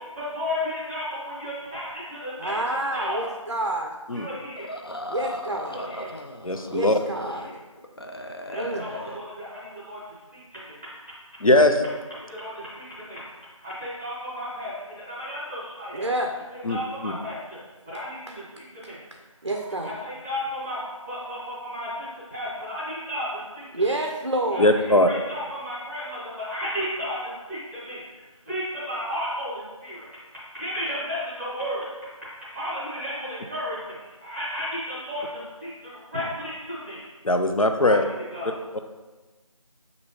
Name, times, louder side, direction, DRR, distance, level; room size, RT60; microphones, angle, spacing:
voice 1, 0.0-3.3 4.1-4.7 5.7-6.1 7.1-7.5 8.4-10.8 12.2-13.2 13.6-16.0 16.5-19.0 19.6-24.0 24.5-30.1 30.3-31.9 32.3-37.0 37.7-38.6, equal, 5° left, -10 dB, 0.9 m, -34 dB
voice 2, 2.4-3.9 5.1-5.8 6.7-7.5 8.5-8.9 15.9-16.3 19.4-20.0 23.7-24.8, right 1 dB, 50° right, 2 dB, 0.4 m, -28 dB
sound 1, 4.6-7.5 7.8-9.2, left 1 dB, 45° left, 0.4 m, -37 dB
voice 3, 6.4-7.0 11.4-11.8 16.6-17.1 24.6-25.1 37.2-38.0 38.7-38.8, left 1 dB, 90° left, 6 dB, 0.6 m, -20 dB
6.7 x 2.7 x 2.9 m, 1.2 s
figure-of-eight pair, 170°, 17 cm